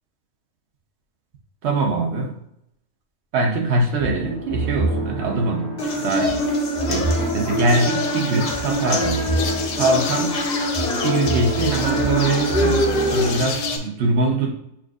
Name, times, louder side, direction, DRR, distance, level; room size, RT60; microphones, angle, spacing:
voice 1, 1.6-2.4 3.3-6.5 6.9-9.3 9.7-10.4 11.0-14.5, right 2 dB, 60° right, 3 dB, 0.9 m, -23 dB
sound 1, 4.0-13.5, right 3 dB, 40° right, 1.3 m, -28 dB
sound 2, 5.8-13.8, left 1 dB, 40° left, 0.6 m, -24 dB
sound 3, 7.7-13.8, left 5 dB, 70° left, 0.9 m, -32 dB
7.1 x 2.4 x 2.4 m, 0.77 s
omnidirectional pair, 1.5 m